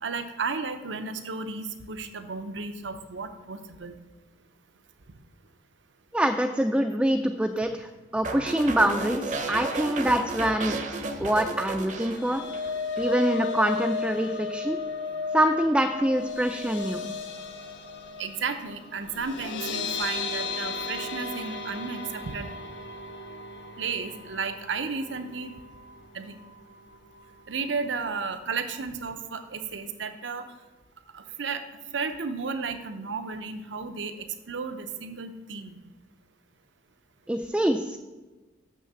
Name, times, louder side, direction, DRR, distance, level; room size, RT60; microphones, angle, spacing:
voice 1, 0.0-3.9 11.2-11.3 18.2-22.5 23.8-25.5 26.1-26.3 27.5-30.4 31.1-31.6 31.9-35.8, right 4 dB, 75° right, 8 dB, 0.8 m, -33 dB
voice 2, 6.1-10.8 11.2-12.4 13.0-14.8 15.3-17.1 37.3-38.0, right 1 dB, 5° right, 5 dB, 0.3 m, -25 dB
sound 1, 8.2-12.7 13.0-13.4, right 3 dB, 40° right, 0.7 m, -33 dB
sound 2, 11.8-26.0 26.4-26.6 26.9-27.0, left 4 dB, 75° left, 1.1 m, -35 dB
6.4 x 6.3 x 6.8 m, 1.2 s
head